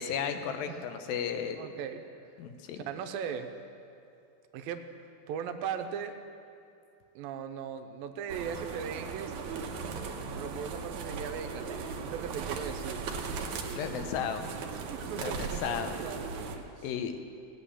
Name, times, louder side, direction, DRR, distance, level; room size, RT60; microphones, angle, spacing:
voice 1, 0.0-1.6 2.4-2.8 13.8-14.4 15.1-15.9 16.8-17.2, left 7 dB, 80° left, 7 dB, 2.6 m, -34 dB
voice 2, 1.6-2.0 2.8-3.5 4.5-4.8 5.3-6.2 7.2-9.3 10.3-13.3 14.4-14.6 14.8-16.3 16.5-16.9, right 7 dB, 85° right, 7 dB, 2.5 m, -38 dB
sound 1, 8.3-16.6, right 5 dB, 65° right, 2.0 m, -38 dB
17.5 x 8.4 x 8.4 m, 2.6 s
omnidirectional pair, 4.2 m